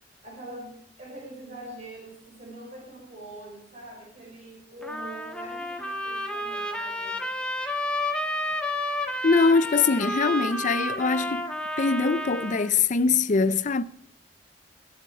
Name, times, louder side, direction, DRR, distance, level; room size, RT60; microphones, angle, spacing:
voice 1, 0.2-7.3, right 1 dB, 40° right, 4.9 m, -43 dB
Trumpet, 4.8-12.7, left 1 dB, 5° left, 1.5 m, -31 dB
voice 2, 9.2-13.8, left 4 dB, 45° left, 0.5 m, -23 dB
22.5 x 7.9 x 5.0 m
head